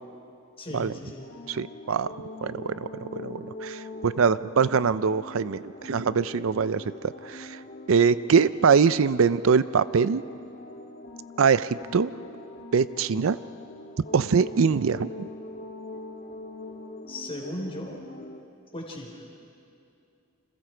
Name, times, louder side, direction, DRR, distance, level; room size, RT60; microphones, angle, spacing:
voice 1, 0.6-1.2 17.1-18.0 18.7-19.2, left 1 dB, 25° left, 1 dB, 3.8 m, -36 dB
sound 1, 1.2-18.4, left 1 dB, 50° left, 1.8 m, -42 dB
voice 2, 1.5-2.1 2.4-7.6 7.9-10.2 11.4-12.1 12.7-13.4 14.1-15.3, right 6 dB, 70° right, 15 dB, 0.5 m, -23 dB
28.5 x 27.0 x 4.5 m, 2.6 s
head